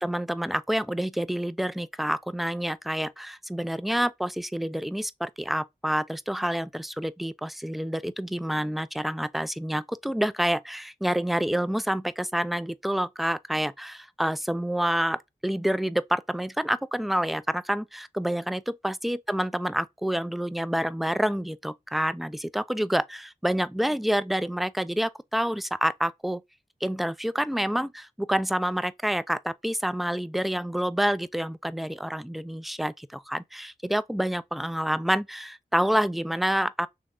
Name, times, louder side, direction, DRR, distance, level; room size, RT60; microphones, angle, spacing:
voice 1, 0.0-26.4 26.8-36.9, equal, ahead, 0.3 m, -28 dB
3.6 x 3.2 x 3.3 m
wide cardioid pair, 40°, 18 cm